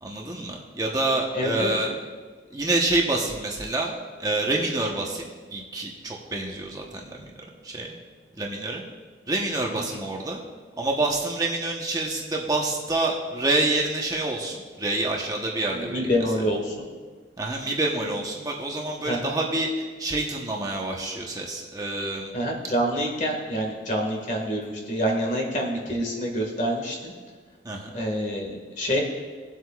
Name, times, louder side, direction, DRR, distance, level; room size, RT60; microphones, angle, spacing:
voice 1, 0.0-1.9 2.5-3.9 4.2-7.3 7.6-7.9 8.4-8.8 9.3-10.4 10.8-16.1 17.4-22.3 27.6-27.9, right 2 dB, 20° right, -1 dB, 1.0 m, -27 dB
voice 2, 1.3-1.8 15.7-16.9 19.1-19.3 22.3-27.1 27.9-29.0, equal, 45° left, 0 dB, 1.8 m, -27 dB
20.5 x 7.9 x 2.4 m, 1.5 s
head